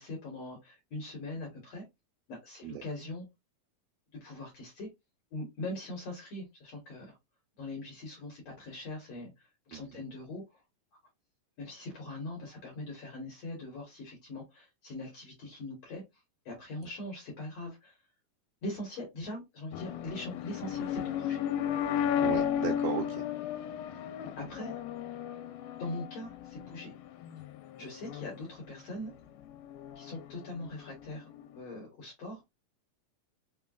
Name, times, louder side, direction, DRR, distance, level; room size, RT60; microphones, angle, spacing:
voice 1, 0.0-1.8 2.3-3.2 4.1-4.9 5.3-7.2 7.6-10.6 11.6-16.0 16.5-18.0 18.6-21.4 23.9-24.7 25.8-26.9 27.8-29.1 30.0-32.4, left 1 dB, 60° left, 2.0 m, -42 dB
voice 2, 9.7-10.0 22.2-23.2, right 12 dB, 90° right, 2.4 m, -36 dB
sound 1, 19.7-31.6, left 9 dB, 90° left, 2.3 m, -35 dB
5.4 x 2.2 x 2.3 m
omnidirectional pair, 4.1 m